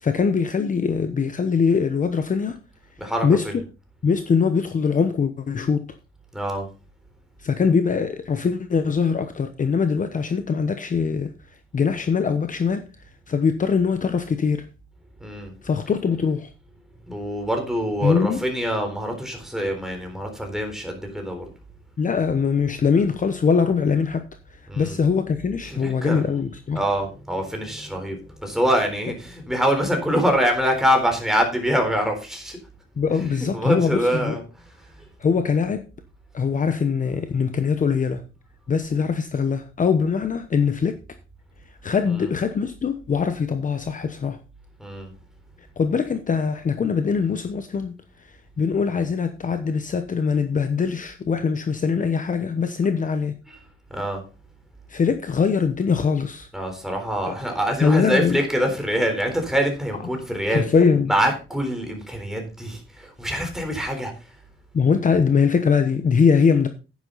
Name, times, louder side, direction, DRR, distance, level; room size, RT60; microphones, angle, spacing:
voice 1, 0.0-2.6 3.2-3.5 4.0-5.9 7.4-11.3 11.7-12.9 13.3-14.6 15.6-16.5 18.0-18.4 22.0-24.3 24.8-26.8 33.0-34.4 35.2-35.9 36.3-38.2 38.7-41.0 41.8-44.4 45.8-47.9 48.2-53.4 54.9-56.5 57.3-57.4 57.8-58.4 60.5-61.1 64.7-66.7, left 5 dB, 40° left, 0.9 m, -22 dB
voice 2, 3.0-3.5 6.3-6.7 15.2-15.5 17.1-21.5 24.7-25.0 25.7-26.3 26.7-32.6 33.1-34.4 35.0-35.1 42.1-42.3 44.8-45.1 53.5-53.6 53.9-54.2 56.5-60.7 61.1-64.1, equal, ahead, 3.8 m, -25 dB
10.0 x 9.8 x 4.0 m
cardioid pair, 120°, 21 cm